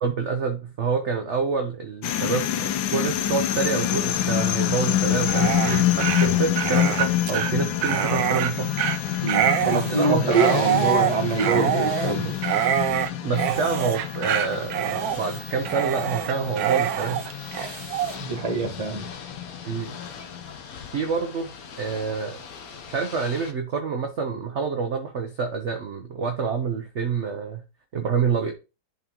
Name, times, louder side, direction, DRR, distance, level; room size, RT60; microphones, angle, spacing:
voice 1, 0.0-8.7 9.7-10.6 11.5-11.7 13.2-17.2 19.6-19.9 20.9-21.5 21.8-22.4 22.9-27.6 27.9-28.5, right 5 dB, 55° right, 0.8 m, -27 dB
sound 1, 2.0-20.5, left 12 dB, 85° left, 1.5 m, -27 dB
Dog, 5.2-18.2, right 10 dB, 85° right, 1.4 m, -26 dB
Ocean / Boat Water vehicle, 8.2-23.5, left 6 dB, 60° left, 1.1 m, -42 dB
voice 2, 9.2-12.4 18.2-19.1, right 3 dB, 20° right, 1.1 m, -24 dB
11.0 x 3.7 x 2.9 m
omnidirectional pair, 2.1 m